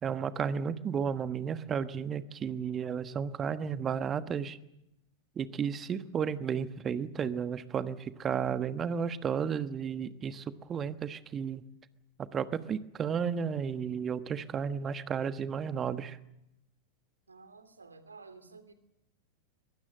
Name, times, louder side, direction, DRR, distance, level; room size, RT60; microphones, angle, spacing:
voice 1, 0.0-4.6 5.4-11.6 12.3-16.2, right 7 dB, 25° right, 12 dB, 1.3 m, -33 dB
voice 2, 17.3-18.7, right 4 dB, 75° right, 10 dB, 2.6 m, -52 dB
23.0 x 22.0 x 7.7 m, 0.84 s
figure-of-eight pair, 90°, 0 cm